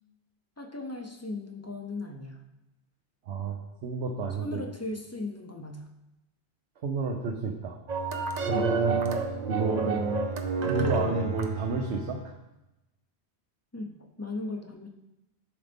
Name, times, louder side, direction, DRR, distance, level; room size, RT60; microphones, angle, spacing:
voice 1, 0.6-2.4 4.3-5.9 8.5-8.8 13.7-14.9, left 2 dB, 20° left, 3 dB, 0.5 m, -37 dB
voice 2, 3.3-4.6 6.8-7.8 8.5-9.0 9.5-10.0 10.6-12.2, right 4 dB, 75° right, 1 dB, 1.0 m, -30 dB
sound 1, 7.9-12.3, right 4 dB, 45° right, 0.7 m, -29 dB
11.0 x 3.9 x 3.5 m, 0.96 s
omnidirectional pair, 1.1 m